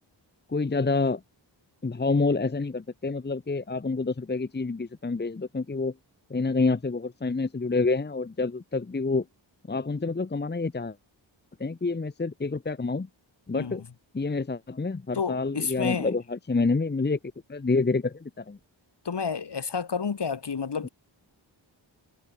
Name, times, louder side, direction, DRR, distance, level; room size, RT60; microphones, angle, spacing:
voice 1, 0.5-1.2 1.8-5.9 6.3-9.2 9.7-11.0 11.6-13.1 13.5-13.8 14.1-17.2 17.5-18.6, left 3 dB, 20° left, 0.9 m, -27 dB
voice 2, 13.5-13.8 15.1-16.1 19.0-20.9, left 6 dB, 60° left, 2.4 m, -30 dB
wide cardioid pair, 70°, 46 cm